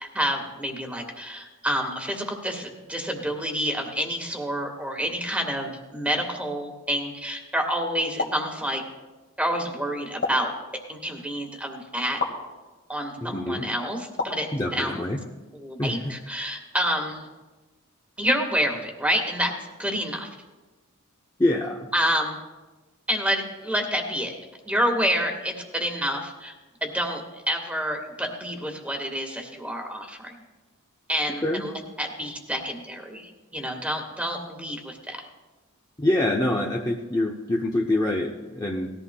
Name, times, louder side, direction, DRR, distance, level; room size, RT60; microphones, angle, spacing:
voice 1, 0.0-8.8 9.4-10.5 10.9-12.2 12.9-15.1 15.5-17.3 18.2-19.5 19.8-20.3 21.9-22.4 23.1-24.3 24.6-26.5 26.8-27.2 27.5-30.3 31.1-35.3, equal, 5° right, 2 dB, 1.5 m, -28 dB
sound 1, 8.2-8.5 10.2-10.5 12.2-12.4 14.2-14.5, left 3 dB, 55° left, 1.8 m, -29 dB
voice 2, 13.2-13.6 14.5-15.2 15.8-15.9 21.4-21.9 31.4-31.6 36.0-38.9, left 1 dB, 15° left, -1 dB, 0.6 m, -25 dB
19.0 x 14.0 x 2.2 m, 1.2 s
head